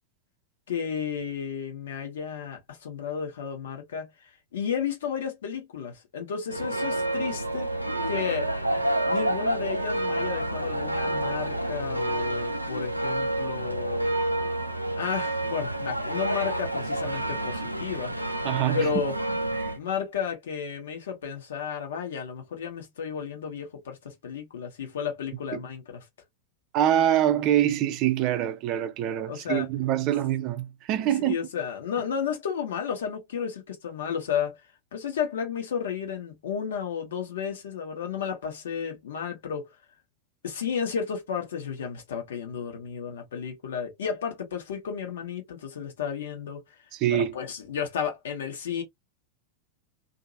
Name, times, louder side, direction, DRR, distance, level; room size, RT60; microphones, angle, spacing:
voice 1, 0.7-7.7 8.1-8.5 9.1-14.1 14.9-18.1 18.7-19.1 19.8-26.0 29.3-29.7 31.0-34.6 34.9-39.7 40.4-46.6 47.1-48.8, left 7 dB, 60° left, 1.1 m, -32 dB
sound 1, 6.5-19.8, right 1 dB, 90° right, 0.5 m, -29 dB
voice 2, 18.4-18.9 19.6-19.7 25.5-25.6 26.7-31.4 46.9-47.4, right 11 dB, 40° right, 0.5 m, -25 dB
2.8 x 2.6 x 2.6 m
figure-of-eight pair, 90°, 0 cm